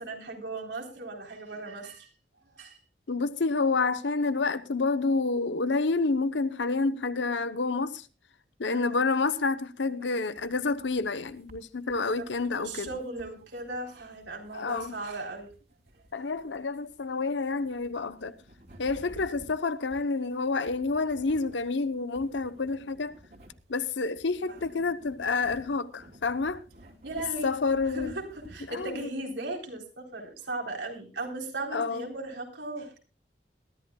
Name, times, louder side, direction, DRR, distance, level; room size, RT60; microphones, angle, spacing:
voice 1, 0.0-2.1 2.6-2.8 8.6-9.0 10.0-10.1 12.0-15.5 24.5-24.6 27.0-27.5 27.9-33.0, right 2 dB, 85° right, 3.9 m, -37 dB
voice 2, 3.1-8.1 8.6-12.9 14.5-14.9 16.1-18.3 18.8-23.2 23.7-26.6 27.4-28.1 28.7-29.1 31.7-32.0, left 3 dB, 85° left, 0.8 m, -29 dB
sound 1, 10.3-29.0, equal, 55° right, 3.1 m, -54 dB
21.5 x 13.5 x 2.3 m
head